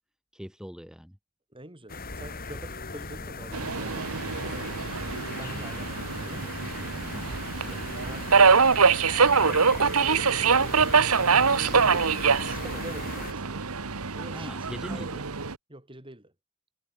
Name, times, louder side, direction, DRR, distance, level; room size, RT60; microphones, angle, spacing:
voice 1, 0.3-1.2 7.1-7.8 14.3-15.3, equal, 5° right, 3.2 m, -41 dB
voice 2, 1.5-6.5 8.0-8.6 9.3-9.9 10.4-10.9 11.6-13.7 14.1-15.1 15.7-16.3, right 1 dB, 25° right, 5.9 m, -45 dB
sound 1, 1.9-13.3, left 3 dB, 40° left, 3.2 m, -39 dB
Subway metro underground, 3.5-15.5, right 5 dB, 75° right, 1.4 m, -24 dB
head